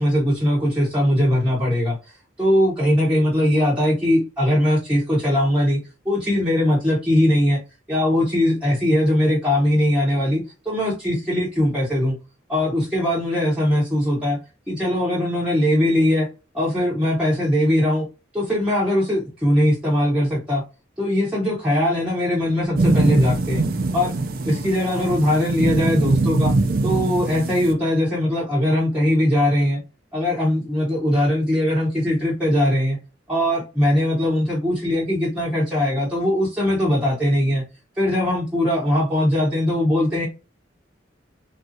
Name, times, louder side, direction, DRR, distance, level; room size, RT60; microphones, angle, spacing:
voice 1, 0.0-2.0 2.4-7.6 7.9-12.2 12.5-14.4 14.7-16.3 16.5-18.1 18.3-20.6 21.0-23.6 23.9-24.1 24.4-26.5 26.8-29.8 30.1-33.0 33.3-37.6 38.0-40.3, left 1 dB, 5° right, 0.9 m, -20 dB
sound 1, 22.7-27.7, right 2 dB, 50° right, 0.4 m, -22 dB
3.2 x 2.7 x 2.6 m
head